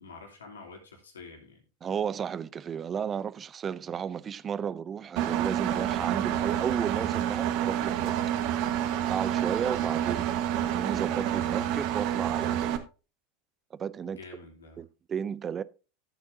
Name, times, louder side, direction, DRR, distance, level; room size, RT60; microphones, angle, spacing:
voice 1, 0.0-1.6 10.0-10.3 14.0-14.9, left 3 dB, 85° left, 2.9 m, -48 dB
voice 2, 1.8-8.2 9.1-10.2 10.5-12.8 13.8-14.2 14.8-15.6, right 7 dB, 30° right, 0.6 m, -33 dB
Engine, 5.2-12.8, right 10 dB, 55° right, 1.3 m, -28 dB
13.5 x 8.5 x 2.7 m
hypercardioid pair, 90°, 0 cm